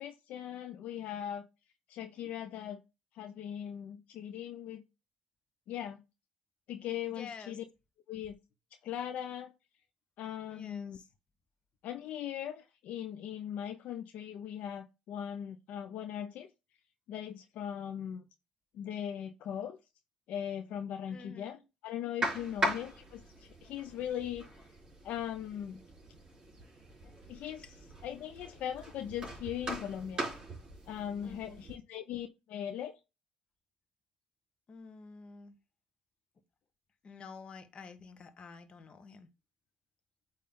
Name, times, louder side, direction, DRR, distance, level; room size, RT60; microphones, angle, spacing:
voice 1, 0.0-1.5 1.9-2.8 3.1-4.8 5.7-6.0 6.7-7.6 8.1-8.4 8.8-9.5 10.2-11.0 11.8-16.5 17.1-18.2 18.7-19.8 20.3-21.6 21.8-24.5 25.0-25.8 27.3-27.7 28.0-30.2 30.9-33.0, left 10 dB, 70° left, 0.6 m, -39 dB
voice 2, 7.0-7.6 10.5-11.0 21.1-21.6 22.3-22.6 31.2-31.6 34.7-35.6 37.0-39.3, left 5 dB, 40° left, 1.3 m, -50 dB
sound 1, 22.2-31.8, right 1 dB, 30° right, 3.8 m, -40 dB
8.5 x 3.2 x 3.7 m
cardioid pair, 90°, 3 cm